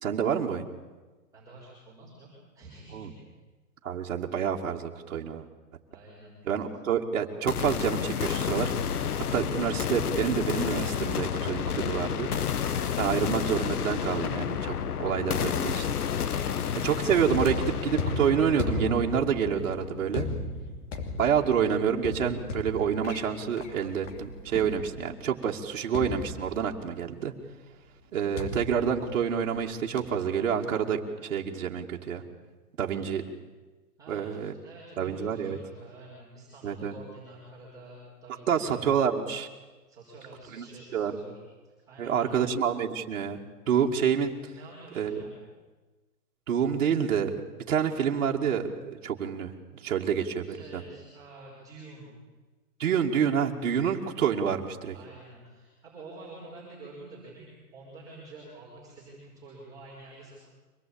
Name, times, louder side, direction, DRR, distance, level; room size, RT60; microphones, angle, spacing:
voice 1, 0.0-0.6 2.9-3.1 3.8-5.4 6.5-8.7 9.3-12.3 13.0-15.9 16.8-20.3 21.2-27.3 28.1-32.2 32.8-33.2 34.1-34.5 35.0-35.6 36.6-36.9 38.5-39.5 40.5-40.7 40.9-41.2 42.0-43.4 43.7-44.3 44.9-45.2 46.5-47.3 47.7-49.5 49.8-50.8 52.8-55.0, right 7 dB, 55° right, 0 dB, 2.4 m, -28 dB
voice 2, 1.3-3.1 5.9-6.4 16.4-16.8 20.3-20.6 32.9-33.1 34.0-38.8 39.9-42.4 44.5-45.3 50.4-52.1 54.9-60.3, right 2 dB, 5° right, -7 dB, 5.0 m, -48 dB
sound 1, 7.5-21.4, left 8 dB, 70° left, 1.3 m, -31 dB
sound 2, 17.3-25.2 25.9-26.9 28.4-29.6 30.0-30.3, left 2 dB, 50° left, 3.0 m, -35 dB
25.0 x 19.0 x 8.8 m, 1.2 s
hypercardioid pair, 170°, 46 cm